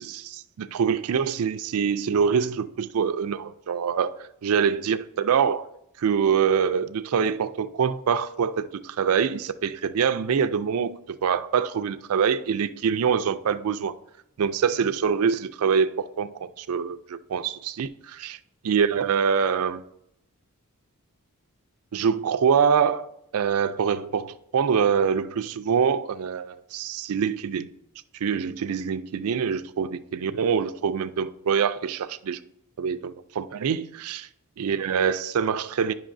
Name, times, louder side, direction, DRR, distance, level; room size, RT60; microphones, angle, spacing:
voice 1, 0.0-5.7 6.0-13.9 14.4-18.4 18.6-19.8 21.9-23.1 23.3-27.7 28.2-32.4 32.8-34.3 34.6-35.9, right 6 dB, 75° right, 0.4 m, -25 dB
10.0 x 5.4 x 2.6 m
head